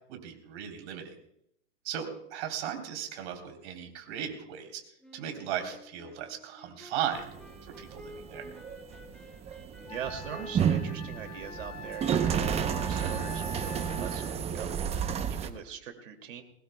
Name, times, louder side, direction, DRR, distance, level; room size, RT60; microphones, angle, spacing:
voice 1, 0.1-1.1 1.8-4.8 5.1-7.3 7.6-8.5, right 9 dB, 55° right, 3 dB, 3.6 m, -37 dB
Wind instrument woodwind instrument, 5.0-14.5, equal, ahead, 3.8 m, -51 dB
sound 1, 7.1-15.5, right 8 dB, 15° right, 0.7 m, -31 dB
Wind instrument woodwind instrument 2, 9.2-9.3 9.9-14.5, left 2 dB, 15° left, 2.0 m, -44 dB
voice 2, 9.8-16.4, right 8 dB, 80° right, 5 dB, 2.6 m, -42 dB
21.5 x 19.5 x 2.3 m, 0.77 s
hypercardioid pair, 130°, 38 cm